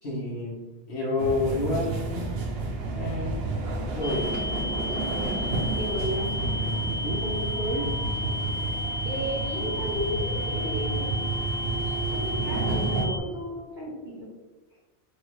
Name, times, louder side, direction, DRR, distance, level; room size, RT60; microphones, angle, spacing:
voice 1, 0.0-0.6 0.9-2.3 2.8-3.3 3.9-4.3 6.5-7.9, left 2 dB, 90° left, -7 dB, 1.6 m, -30 dB
sound 1, 1.2-13.1, right 3 dB, 75° right, 0.9 m, -30 dB
sound 2, 4.0-13.2, left 2 dB, 25° left, 0.4 m, -33 dB
voice 2, 5.7-6.3 9.1-11.3 12.1-14.3, equal, 50° right, -8 dB, 1.8 m, -33 dB
4.7 x 2.7 x 3.1 m, 1.1 s
omnidirectional pair, 1.1 m